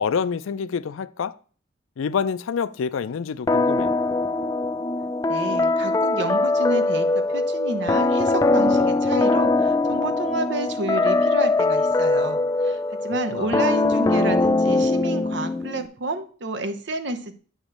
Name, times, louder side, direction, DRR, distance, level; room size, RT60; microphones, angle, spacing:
voice 1, 0.0-1.3 2.0-3.9 13.3-13.7, left 6 dB, 85° left, 0.4 m, -27 dB
sound 1, 3.5-15.9, left 2 dB, 15° left, 0.3 m, -21 dB
voice 2, 5.3-17.3, right 2 dB, 60° right, 0.8 m, -30 dB
8.7 x 3.0 x 6.5 m
head